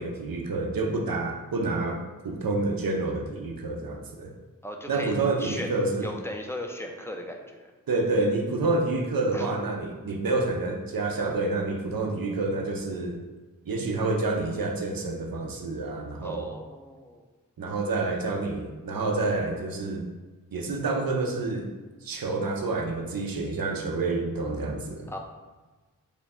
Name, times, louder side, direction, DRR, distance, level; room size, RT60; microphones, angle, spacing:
voice 1, 0.0-2.0 2.2-4.3 4.9-6.1 7.9-13.2 13.7-16.5 17.6-20.1 20.5-21.7 22.0-25.1, right 3 dB, 85° right, 3 dB, 0.6 m, -28 dB
voice 2, 4.6-5.7 6.0-7.7 9.3-9.5 16.2-17.2 25.1-25.2, left 1 dB, 10° left, 2 dB, 0.4 m, -37 dB
3.1 x 2.4 x 4.1 m, 1.3 s
wide cardioid pair, 50°, 34 cm